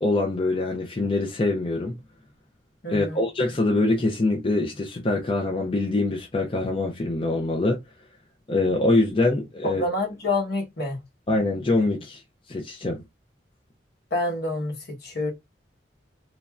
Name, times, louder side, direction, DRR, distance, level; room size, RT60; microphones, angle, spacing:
voice 1, 0.0-2.0 2.9-7.8 8.5-9.8 11.3-12.2 12.5-13.0, left 2 dB, 30° left, 0.5 m, -24 dB
voice 2, 2.8-3.2 9.6-11.0 14.1-15.3, left 2 dB, 55° left, 1.0 m, -27 dB
3.1 x 2.5 x 2.3 m
head